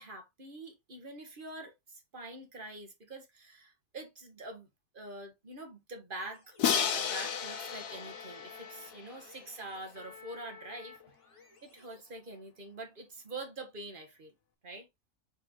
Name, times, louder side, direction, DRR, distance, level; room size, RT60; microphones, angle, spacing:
voice 1, 0.0-4.7 4.9-6.6 6.9-11.0 11.6-14.3 14.6-14.9, right 2 dB, 35° right, 1.9 m, -45 dB
sound 1, 6.2-12.4, left 4 dB, 20° left, 1.2 m, -53 dB
Crash cymbal, 6.6-9.6, left 7 dB, 90° left, 1.5 m, -33 dB
6.3 x 4.8 x 3.1 m
omnidirectional pair, 1.6 m